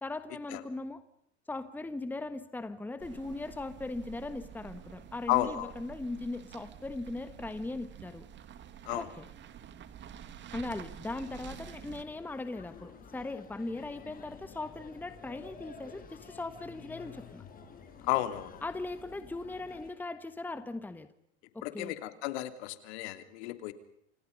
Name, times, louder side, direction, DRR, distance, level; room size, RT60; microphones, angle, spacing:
voice 1, 0.0-1.0 1.5-8.3 9.0-9.2 10.5-17.4 18.6-21.1 21.5-22.0, left 2 dB, 5° left, 11 dB, 1.4 m, -39 dB
sound 1, 3.0-12.0, right 9 dB, 30° right, 2.3 m, -49 dB
voice 2, 5.3-5.7 8.8-9.1 18.1-18.6 21.6-23.7, left 15 dB, 65° left, 9 dB, 3.2 m, -32 dB
sound 2, 11.0-19.9, left 6 dB, 25° left, 5.4 m, -51 dB
29.0 x 28.5 x 5.4 m, 0.73 s
supercardioid pair, 125°, 35 cm